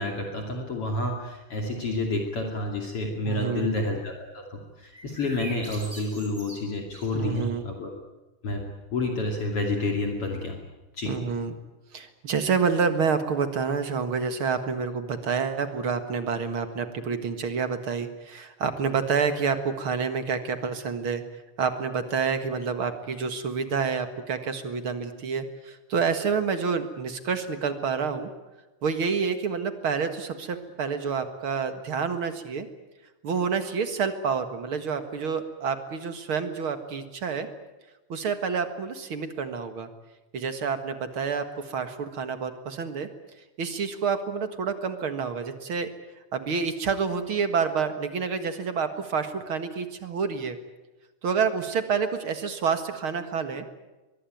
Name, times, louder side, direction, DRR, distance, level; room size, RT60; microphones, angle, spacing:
voice 1, 0.0-7.9 8.4-8.6 8.9-10.6 11.0-11.1, left 2 dB, 50° left, 2 dB, 3.5 m, -29 dB
voice 2, 3.3-3.7 7.1-7.7 11.1-11.5 11.9-21.2 21.6-28.3 28.8-32.7 33.2-37.5 38.1-39.9 40.3-43.1 43.6-45.9 46.3-50.6 51.2-53.7, right 5 dB, 50° right, 9 dB, 2.2 m, -28 dB
sound 1, 4.9-7.6, right 1 dB, 10° right, 6.3 m, -43 dB
23.0 x 22.5 x 9.3 m, 1.1 s
omnidirectional pair, 3.5 m